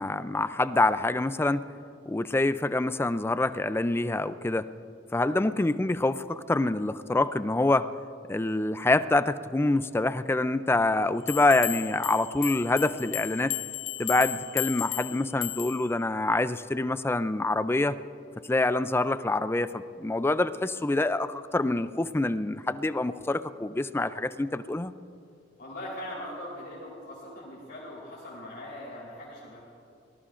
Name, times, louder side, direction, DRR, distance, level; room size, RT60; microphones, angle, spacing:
voice 1, 0.0-1.6 2.1-4.7 5.1-7.9 8.3-13.6 14.0-18.0 18.5-24.9, left 2 dB, 15° left, 13 dB, 0.4 m, -26 dB
sound 1, 11.3-15.9, left 19 dB, 85° left, 0.3 m, -35 dB
voice 2, 25.6-29.6, left 1 dB, 55° left, -7 dB, 3.8 m, -40 dB
24.5 x 19.0 x 2.5 m, 2.6 s
head